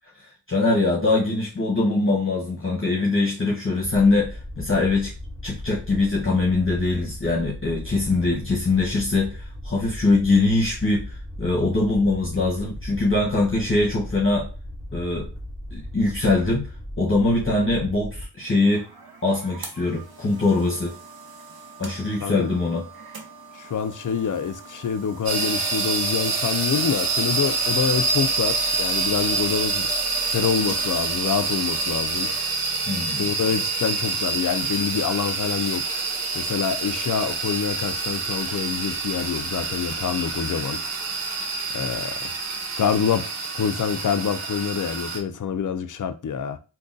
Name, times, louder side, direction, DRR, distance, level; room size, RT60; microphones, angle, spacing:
voice 1, 0.1-5.1 5.4-14.5 14.9-15.3 15.7-18.9 19.2-20.9 21.8-22.8 32.9-33.2, left 2 dB, 25° left, 1.0 m, -22 dB
sound 1, 3.8-18.3, left 1 dB, 5° left, 1.1 m, -37 dB
sound 2, 18.4-32.4, right 4 dB, 50° right, 0.8 m, -44 dB
voice 2, 23.5-29.9 30.3-32.3 33.2-35.9 36.3-40.8 41.7-42.3 42.8-43.3 43.5-46.6, left 7 dB, 40° left, 0.4 m, -26 dB
sound 3, 25.3-45.2, right 4 dB, 90° right, 0.7 m, -27 dB
3.6 x 2.3 x 2.5 m
cardioid pair, 40°, 48 cm